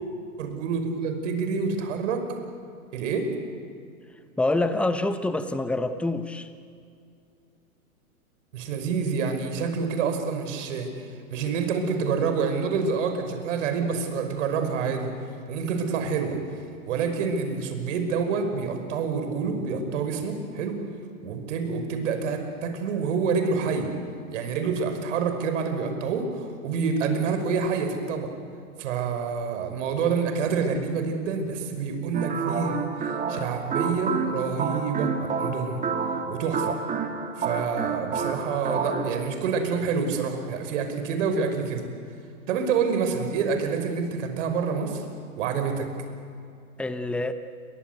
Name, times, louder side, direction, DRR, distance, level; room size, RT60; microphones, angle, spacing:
voice 1, 0.4-2.2 2.9-3.3 8.5-10.9 11.3-15.1 15.5-16.4 16.8-20.8 21.2-23.9 24.3-28.3 28.8-32.9 33.3-35.8 36.3-36.8 37.4-41.9 42.5-45.0 45.4-45.9, right 5 dB, 55° right, 6 dB, 5.7 m, -27 dB
voice 2, 4.4-6.5 46.8-47.3, left 2 dB, 5° left, 10 dB, 1.1 m, -26 dB
sound 1, 32.1-39.2, right 5 dB, 15° right, 2.8 m, -29 dB
30.0 x 23.5 x 8.2 m, 2.4 s
hypercardioid pair, 120°, 44 cm